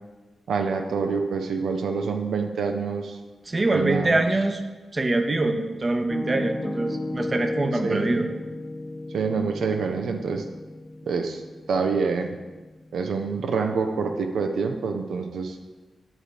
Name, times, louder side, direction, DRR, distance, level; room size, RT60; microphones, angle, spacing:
voice 1, 0.5-3.2 3.7-4.2 7.8-8.3 9.1-10.4 11.1-11.4 11.7-12.3 12.9-15.6, right 5 dB, 80° right, 5 dB, 0.5 m, -26 dB
voice 2, 3.5-4.6 4.9-8.3, right 2 dB, 35° right, 6 dB, 0.7 m, -24 dB
Piano, 6.1-14.0, left 2 dB, 25° left, 0.3 m, -35 dB
9.8 x 3.4 x 5.0 m, 1.3 s
cardioid pair, 70°, 0 cm